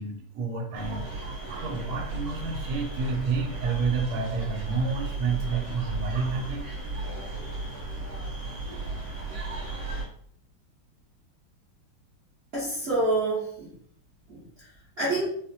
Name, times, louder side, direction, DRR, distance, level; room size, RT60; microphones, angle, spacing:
voice 1, 0.0-6.7, right 4 dB, 85° right, 1 dB, 1.5 m, -30 dB
sound 1, 0.7-10.0, right 3 dB, 35° right, 1.1 m, -35 dB
voice 2, 12.5-13.8 14.3-14.7 15.0-15.3, right 2 dB, 50° right, -8 dB, 0.7 m, -27 dB
4.2 x 2.1 x 2.6 m, 0.62 s
omnidirectional pair, 2.3 m